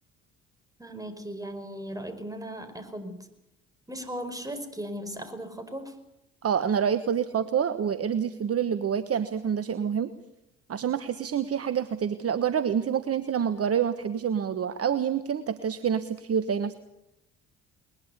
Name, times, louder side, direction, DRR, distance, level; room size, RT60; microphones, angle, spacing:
voice 1, 0.8-3.3 3.9-5.9, equal, 10° right, 9 dB, 5.0 m, -37 dB
voice 2, 6.4-10.1 10.7-16.7, right 8 dB, 40° right, 12 dB, 1.3 m, -27 dB
21.5 x 21.0 x 8.2 m, 0.85 s
hypercardioid pair, 55°, 36 cm